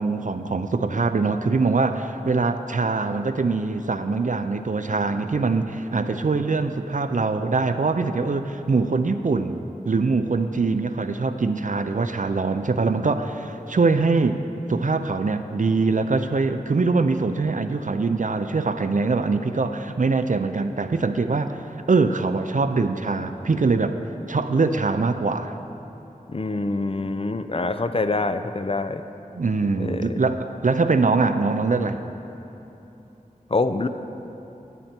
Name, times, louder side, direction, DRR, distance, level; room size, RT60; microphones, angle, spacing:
voice 1, 0.0-9.6 9.9-14.4 14.7-21.6 21.9-23.9 24.3-25.5 29.3-32.0, right 4 dB, 60° right, 9 dB, 0.5 m, -23 dB
voice 2, 26.3-29.0 29.8-30.2 33.5-33.9, left 3 dB, 40° left, 10 dB, 0.5 m, -25 dB
11.0 x 10.0 x 4.4 m, 3.0 s
wide cardioid pair, 45°, 15 cm